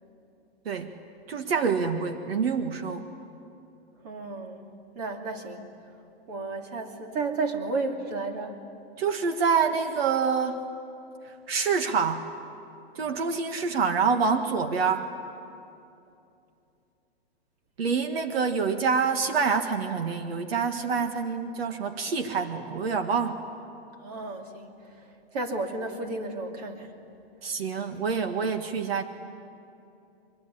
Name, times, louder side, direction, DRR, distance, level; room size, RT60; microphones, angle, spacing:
voice 1, 1.3-3.1 9.0-10.6 11.5-12.3 12.9-15.1 17.8-23.4 27.4-29.0, right 5 dB, 65° right, 7 dB, 1.7 m, -26 dB
voice 2, 4.0-4.6 4.9-5.6 6.3-8.6 24.0-24.7 25.3-26.9, right 3 dB, 40° right, 3 dB, 2.7 m, -32 dB
23.5 x 23.0 x 9.9 m, 2.7 s
hypercardioid pair, 175°, 32 cm